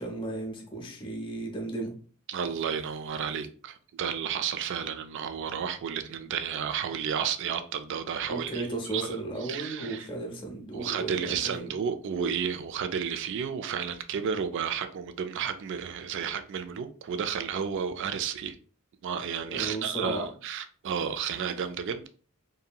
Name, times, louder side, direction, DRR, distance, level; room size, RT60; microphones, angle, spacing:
voice 1, 0.0-1.9 8.3-11.8 19.5-20.3, right 2 dB, 20° left, 0.6 m, -35 dB
voice 2, 2.3-10.1 10.7-18.6 19.0-22.1, right 7 dB, 55° right, 0.3 m, -32 dB
2.7 x 2.7 x 2.2 m
head